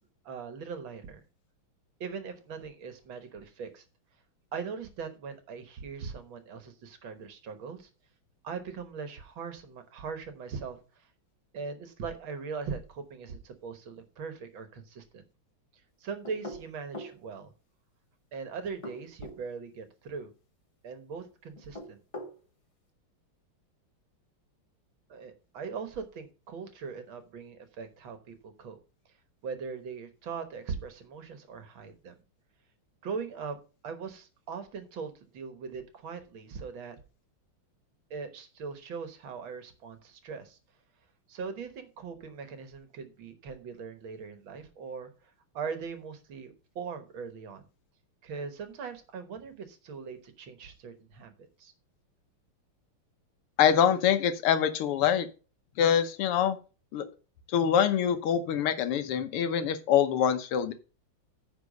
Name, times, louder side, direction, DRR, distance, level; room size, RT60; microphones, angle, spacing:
voice 1, 0.3-1.2 2.0-3.8 4.5-7.9 8.4-11.0 11.5-15.2 16.0-17.5 18.3-20.3 20.8-22.0 25.1-28.8 29.4-32.1 33.0-33.6 33.8-37.0 38.1-40.6 41.3-45.1 45.5-47.6 48.2-51.7, right 5 dB, 65° right, 9 dB, 1.9 m, -40 dB
sound 1, 16.2-17.2 18.6-19.4 21.5-22.4, equal, 40° left, 0.4 m, -42 dB
voice 2, 53.6-55.3 55.8-56.6 56.9-57.1 57.5-60.7, left 9 dB, 85° left, 11 dB, 1.9 m, -25 dB
9.8 x 4.7 x 5.2 m, 0.34 s
omnidirectional pair, 2.4 m